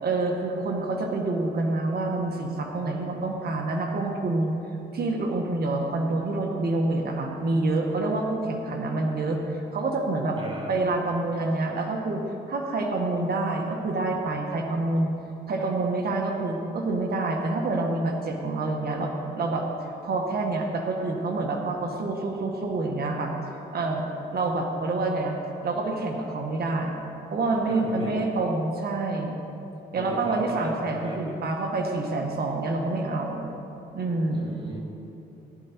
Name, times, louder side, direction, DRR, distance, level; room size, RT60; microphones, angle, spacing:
voice 1, 0.0-4.6 4.9-10.4 10.7-12.2 12.5-15.2 15.5-23.3 23.7-24.0 24.3-25.4 25.6-26.9 27.3-29.4 29.9-33.5 33.9-34.6, right 2 dB, 50° right, 1 dB, 1.7 m, -27 dB
voice 2, 10.4-10.8 27.7-28.1 29.9-31.4 34.3-34.8, right 1 dB, 25° right, -4 dB, 3.8 m, -37 dB
19.0 x 11.0 x 4.6 m, 2.9 s
cardioid pair, 90°, 20 cm